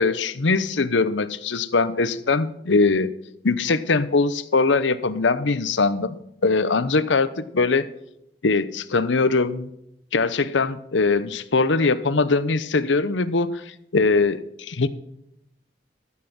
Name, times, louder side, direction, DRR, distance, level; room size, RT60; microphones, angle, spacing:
voice 1, 0.0-3.1 3.4-7.9 8.4-9.7 10.1-13.6 13.9-14.9, left 3 dB, 85° left, 14 dB, 0.8 m, -21 dB
13.5 x 7.5 x 5.9 m, 0.78 s
head